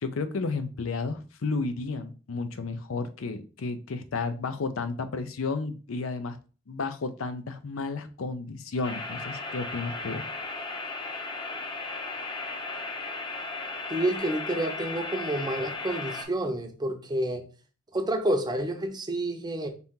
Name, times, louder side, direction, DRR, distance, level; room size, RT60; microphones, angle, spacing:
voice 1, 0.0-6.4 6.7-10.3, left 4 dB, 85° left, 0.5 m, -32 dB
sound 1, 8.8-16.3, left 3 dB, 25° left, 0.6 m, -36 dB
voice 2, 13.9-17.5 17.9-19.7, right 1 dB, 20° right, 0.6 m, -29 dB
4.1 x 2.8 x 3.6 m
head